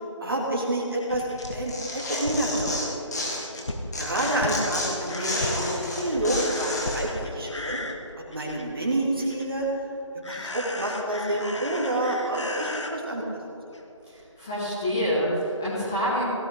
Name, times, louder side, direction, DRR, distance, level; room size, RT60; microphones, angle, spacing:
voice 1, 0.2-3.0 4.0-7.8 8.3-9.7 10.3-13.2, right 1 dB, 45° right, -1 dB, 2.4 m, -28 dB
sound 1, 1.0-8.8 9.2-9.8 10.2-12.9 13.7-13.8 14.2-14.3, left 1 dB, 65° left, 1.4 m, -36 dB
Tearing, 1.4-3.6 3.9-7.0, left 2 dB, 35° left, 2.0 m, -31 dB
voice 2, 14.0-16.2, equal, 5° left, -12 dB, 0.7 m, -27 dB
17.0 x 10.5 x 3.7 m, 2.9 s
figure-of-eight pair, 165°, 16 cm